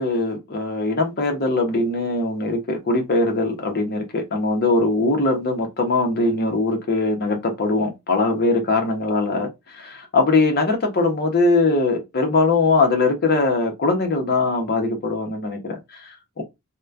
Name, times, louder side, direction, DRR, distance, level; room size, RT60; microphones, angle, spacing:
voice 1, 0.0-16.4, left 3 dB, 45° left, 0.7 m, -21 dB
3.0 x 2.1 x 2.3 m
head